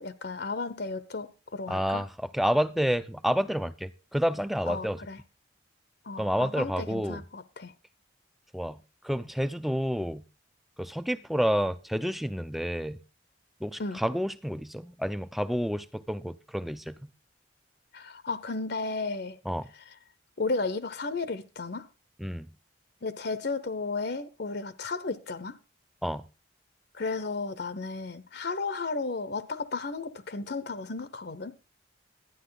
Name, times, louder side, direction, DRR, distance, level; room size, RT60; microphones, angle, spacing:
voice 1, 0.0-2.0 4.7-5.2 6.1-7.7 13.8-14.0 17.9-19.4 20.4-21.9 23.0-25.6 26.9-31.5, left 3 dB, 55° left, 0.8 m, -34 dB
voice 2, 1.7-2.1 2.3-5.0 6.2-7.2 8.5-8.8 9.0-10.2 10.8-13.0 13.6-17.1 19.5-19.7 22.2-22.5 26.0-26.2, equal, ahead, 0.5 m, -29 dB
12.0 x 10.0 x 3.9 m
head